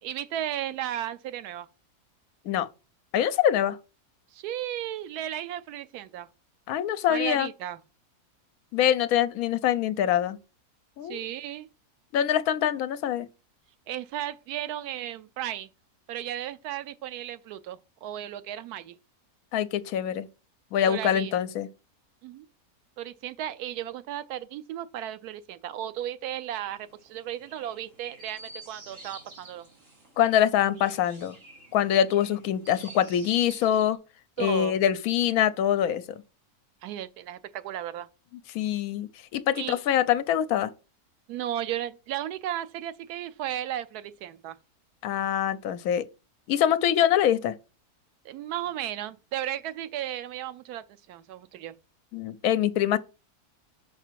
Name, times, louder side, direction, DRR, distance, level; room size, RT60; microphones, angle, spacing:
voice 1, 0.0-1.7 4.3-6.3 7.1-7.8 11.0-11.7 13.9-15.7 16.1-19.0 20.9-21.3 22.2-22.5 23.0-29.7 34.4-34.8 36.8-38.1 39.5-39.8 41.3-44.6 48.2-51.7, right 11 dB, 85° right, 1.1 m, -35 dB
voice 2, 3.1-3.8 6.7-7.5 8.7-10.4 11.0-11.2 12.1-13.3 19.5-20.3 20.7-21.7 30.2-31.4 31.7-34.0 34.4-36.2 38.5-40.7 45.0-46.0 46.5-47.5 52.1-53.0, left 10 dB, 75° left, 1.1 m, -24 dB
Chirp tweet, 26.7-34.0, right 2 dB, 55° right, 2.6 m, -49 dB
5.7 x 4.9 x 4.5 m
omnidirectional pair, 1.6 m